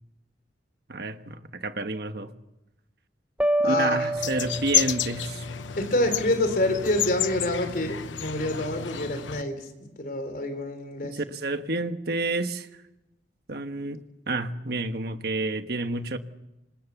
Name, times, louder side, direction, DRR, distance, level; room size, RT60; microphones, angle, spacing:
voice 1, 0.9-2.3 3.6-5.4 11.0-12.7 13.5-16.2, right 2 dB, 55° right, 1.4 m, -30 dB
sound 1, 3.4-5.3, right 1 dB, 5° right, 1.0 m, -27 dB
voice 2, 3.6-4.1 5.8-11.2, left 1 dB, 50° left, 4.0 m, -27 dB
sound 2, 4.2-9.4, left 9 dB, 85° left, 0.9 m, -30 dB
27.0 x 26.0 x 7.2 m
head